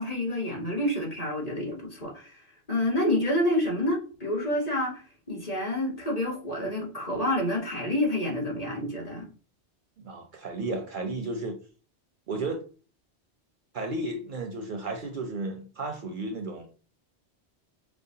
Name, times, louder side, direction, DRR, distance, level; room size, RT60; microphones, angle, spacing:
voice 1, 0.0-2.4 2.7-5.0 5.3-9.3, left 1 dB, 35° left, 1.0 m, -28 dB
voice 2, 10.0-11.6 12.3-12.6 13.7-16.7, right 2 dB, 60° right, 0.6 m, -33 dB
5.1 x 2.0 x 2.7 m
omnidirectional pair, 1.1 m